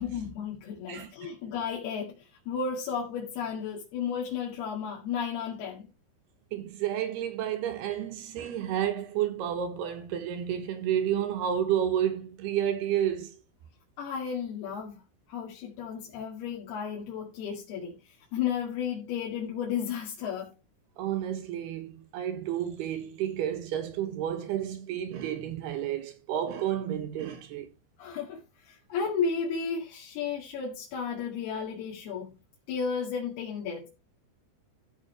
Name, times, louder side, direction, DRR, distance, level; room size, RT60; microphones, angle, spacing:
voice 1, 0.0-5.9 14.0-15.0 15.3-18.0 18.3-20.5 28.0-32.3 32.7-33.9, left 6 dB, 65° left, 3.9 m, -33 dB
voice 2, 0.9-1.3 6.5-13.3 21.0-27.7, right 10 dB, 70° right, 3.0 m, -31 dB
14.0 x 5.9 x 4.3 m
omnidirectional pair, 5.2 m